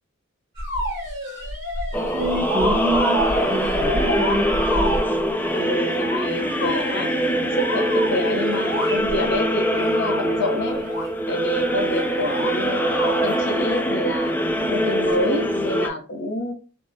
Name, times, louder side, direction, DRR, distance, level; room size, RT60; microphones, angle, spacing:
sound 1, 0.6-5.1 5.8-9.3 9.7-11.1 11.9-12.5 12.8-13.4 15.1-15.2, equal, 60° right, 1.7 m, -29 dB
sound 2, 1.9-15.9, equal, 10° left, 0.3 m, -23 dB
voice 1, 2.1-4.5, right 1 dB, 80° right, 1.2 m, -26 dB
voice 2, 5.5-7.1 7.5-10.8 11.3-12.9 13.2-16.5, left 1 dB, 60° left, 0.7 m, -27 dB
3.5 x 2.0 x 2.6 m
head